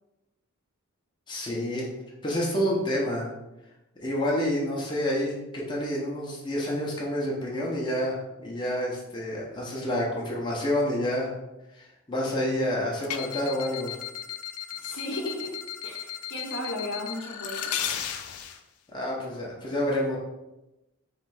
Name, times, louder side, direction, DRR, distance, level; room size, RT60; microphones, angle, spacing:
voice 1, 1.3-1.9 2.2-3.3 4.0-11.3 11.7-13.9 18.9-20.2, left 1 dB, 20° left, -4 dB, 0.8 m, -28 dB
sound 1, 13.0-18.6, left 9 dB, 90° left, 0.4 m, -35 dB
voice 2, 14.8-15.6 15.8-17.8, left 1 dB, 55° left, -1 dB, 0.9 m, -35 dB
3.3 x 3.2 x 4.7 m, 0.98 s
head